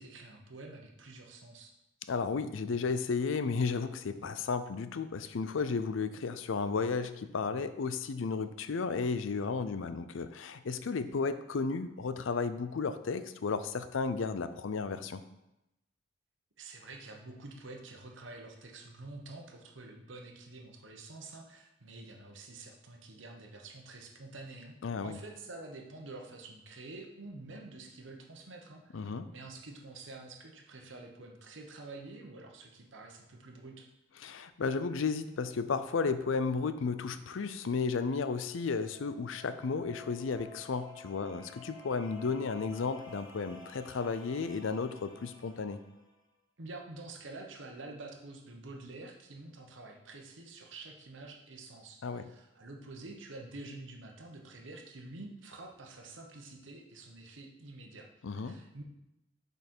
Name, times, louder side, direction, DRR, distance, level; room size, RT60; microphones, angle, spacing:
voice 1, 0.0-1.7 16.6-24.7 25.0-33.9 46.6-58.1 58.4-58.8, right 2 dB, 70° right, 2 dB, 1.1 m, -48 dB
voice 2, 2.1-15.2 24.8-25.2 28.9-29.3 34.2-45.8 52.0-52.3 58.2-58.6, left 4 dB, 75° left, 11 dB, 0.5 m, -33 dB
sound 1, 38.5-46.2, left 3 dB, 25° left, 1.6 m, -52 dB
6.3 x 5.4 x 4.4 m, 0.89 s
head